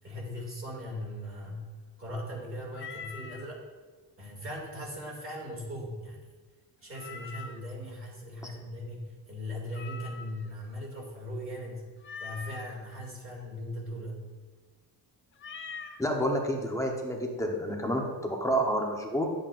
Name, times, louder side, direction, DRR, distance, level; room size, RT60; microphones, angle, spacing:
voice 1, 0.0-1.7 2.0-3.6 4.2-6.2 6.8-11.9 12.2-14.2, equal, 30° right, -3 dB, 2.3 m, -39 dB
Meow, 2.7-3.5 6.9-7.7 9.7-10.5 12.0-12.7 15.4-16.0, left 5 dB, 30° left, 0.4 m, -43 dB
voice 2, 16.0-19.2, equal, 5° left, 0 dB, 0.9 m, -29 dB
10.5 x 7.8 x 2.5 m, 1.4 s
wide cardioid pair, 160°, 42 cm